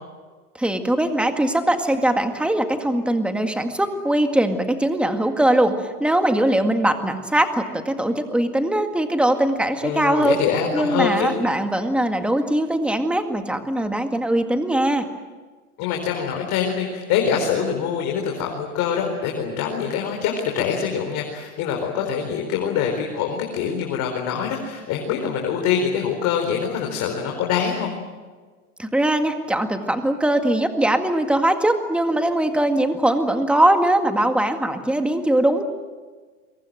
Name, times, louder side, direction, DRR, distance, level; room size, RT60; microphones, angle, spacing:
voice 1, 0.6-10.4 10.7-15.1 28.8-35.6, right 1 dB, ahead, 6 dB, 1.9 m, -21 dB
voice 2, 9.8-11.4 15.8-27.9, left 7 dB, 40° left, 1 dB, 4.5 m, -24 dB
28.0 x 23.5 x 7.8 m, 1.4 s
hypercardioid pair, 135°, 44 cm